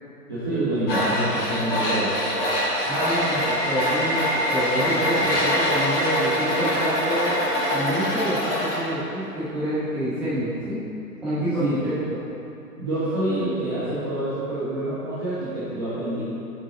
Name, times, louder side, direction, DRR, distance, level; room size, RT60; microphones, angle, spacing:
voice 1, 0.3-2.2 5.1-5.5 11.6-11.9 12.8-16.3, right 1 dB, 15° right, -11 dB, 0.5 m, -27 dB
Tools, 0.9-8.8, left 1 dB, 35° left, 1.4 m, -25 dB
sound 1, 2.3-8.6, right 1 dB, 50° right, 1.2 m, -31 dB
voice 2, 2.8-7.3 7.7-10.8 11.2-11.9, right 1 dB, ahead, -13 dB, 0.9 m, -27 dB
7.5 x 6.0 x 2.7 m, 2.8 s
figure-of-eight pair, 135°, 48 cm